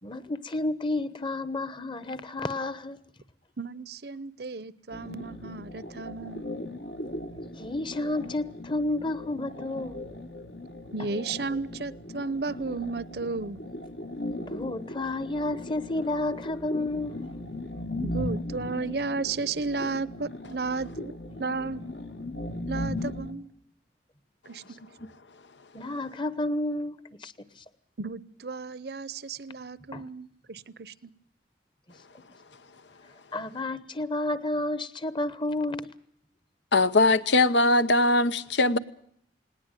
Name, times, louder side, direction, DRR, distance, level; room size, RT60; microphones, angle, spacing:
voice 1, 0.0-3.0 7.5-10.0 11.0-11.1 14.4-17.2 17.5-17.9 25.7-27.6 29.9-30.0 33.3-35.9, left 2 dB, 25° left, 1.0 m, -31 dB
voice 2, 3.6-6.4 10.9-13.6 18.0-21.1 21.4-21.8 22.7-23.5 24.5-24.8 28.0-31.1, right 4 dB, 65° right, 0.8 m, -33 dB
sound 1, 4.9-23.3, left 1 dB, 70° left, 1.9 m, -38 dB
voice 3, 36.7-38.8, left 2 dB, 90° left, 1.0 m, -21 dB
19.5 x 18.5 x 9.1 m
head